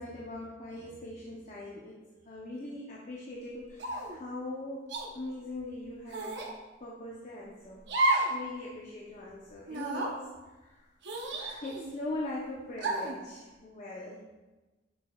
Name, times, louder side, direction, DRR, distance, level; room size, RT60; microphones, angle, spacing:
voice 1, 0.0-2.0 2.3-4.9 5.1-6.5 6.8-7.9 8.3-10.3 10.6-10.7 11.3-14.2, left 2 dB, 40° left, -4 dB, 0.8 m, -41 dB
sound 1, 3.8-4.2 4.9-5.1 6.1-6.5 7.9-8.4 8.7-8.8 9.7-10.1 11.0-11.9 12.8-13.2, right 2 dB, 65° right, 0.8 m, -31 dB
7.0 x 6.4 x 2.3 m, 1.2 s
head